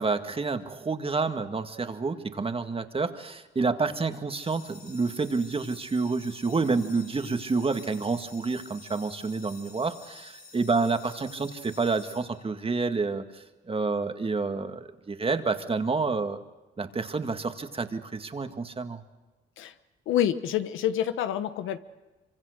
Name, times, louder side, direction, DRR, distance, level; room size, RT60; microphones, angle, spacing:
voice 1, 0.0-16.4 16.8-19.0, right 4 dB, 30° right, 8 dB, 1.9 m, -29 dB
sound 1, 4.3-13.0, left 3 dB, 45° left, 4.1 m, -50 dB
voice 2, 20.1-21.8, left 10 dB, 85° left, 11 dB, 1.2 m, -27 dB
25.5 x 25.0 x 6.6 m, 1.2 s
cardioid pair, 90°, 20 cm